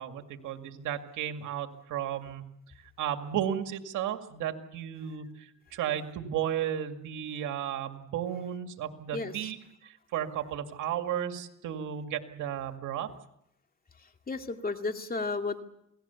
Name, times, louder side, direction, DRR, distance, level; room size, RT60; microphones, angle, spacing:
voice 1, 0.0-2.5 2.8-13.1, right 10 dB, 90° right, 6 dB, 2.1 m, -34 dB
voice 2, 9.1-9.5 14.0-15.6, left 3 dB, 30° left, 5 dB, 2.3 m, -34 dB
28.0 x 18.5 x 7.1 m, 0.79 s
cardioid pair, 90°, 30 cm